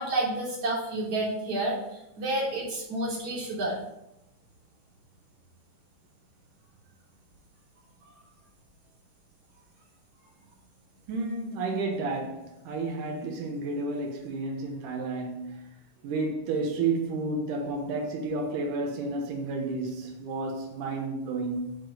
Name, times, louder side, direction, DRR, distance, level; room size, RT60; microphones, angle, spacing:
voice 1, 0.0-1.8 2.2-3.8, right 2 dB, 50° right, 4.5 m, -29 dB
voice 2, 11.1-15.6 16.0-21.8, right 3 dB, 85° right, 2.7 m, -31 dB
10.0 x 5.0 x 5.0 m
omnidirectional pair, 3.6 m